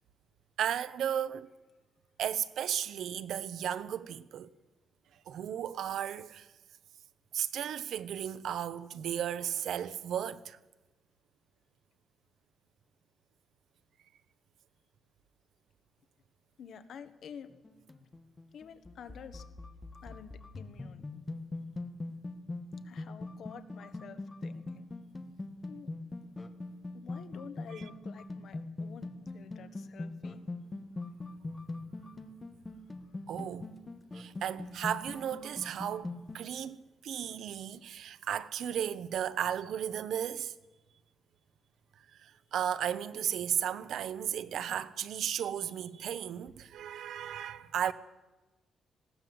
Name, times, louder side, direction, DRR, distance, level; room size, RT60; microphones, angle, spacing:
voice 1, 0.6-1.5 2.2-4.5 5.3-6.5 7.3-10.6 27.8-27.9 33.3-33.7 34.1-36.1 36.3-40.5 42.2-47.9, right 9 dB, 70° right, 0.9 m, -34 dB
voice 2, 16.6-17.5 18.5-19.5 20.0-21.1 22.8-24.9 25.7-25.9 26.9-30.4 33.4-33.5, left 7 dB, 55° left, 1.4 m, -49 dB
sound 1, 17.5-36.5, left 2 dB, 20° left, 1.3 m, -42 dB
20.0 x 17.0 x 7.8 m
cardioid pair, 155°, 0 cm